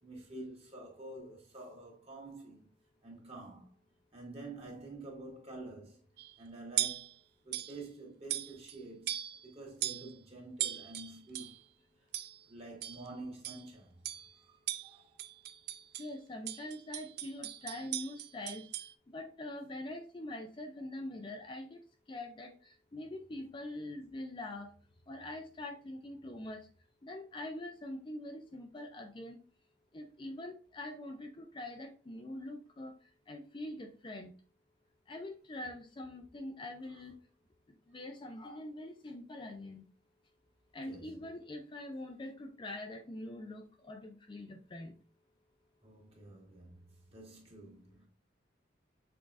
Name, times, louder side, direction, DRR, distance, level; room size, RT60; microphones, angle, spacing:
voice 1, 0.0-2.7 3.0-3.7 4.1-6.0 6.4-7.2 7.4-9.2 9.4-11.6 12.4-15.2 36.9-37.0 40.9-41.2 45.8-48.1, right 2 dB, 35° right, 1.7 m, -48 dB
sound 1, 6.2-6.4 6.8-7.1 7.5-7.8 8.3-8.8 9.1-9.5 9.8-10.1 10.6-11.6 12.1-12.4 12.8-13.1 13.4-13.7 14.0-14.3 14.7-16.1 16.5-18.9, right 13 dB, 60° right, 0.4 m, -38 dB
voice 2, 15.9-18.7 19.1-21.8 22.1-24.7 25.1-26.7 27.0-29.4 29.9-34.3 35.1-37.2 37.7-39.8 40.7-44.9, left 1 dB, 25° left, 0.4 m, -44 dB
6.0 x 3.7 x 2.4 m
head